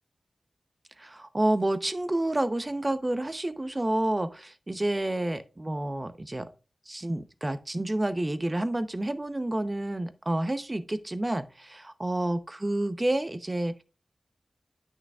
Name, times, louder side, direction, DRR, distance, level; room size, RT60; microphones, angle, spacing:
voice 1, 1.0-6.5 6.9-13.8, right 1 dB, 30° right, 0.7 m, -29 dB
9.4 x 5.8 x 2.4 m
cardioid pair, 45°, 0 cm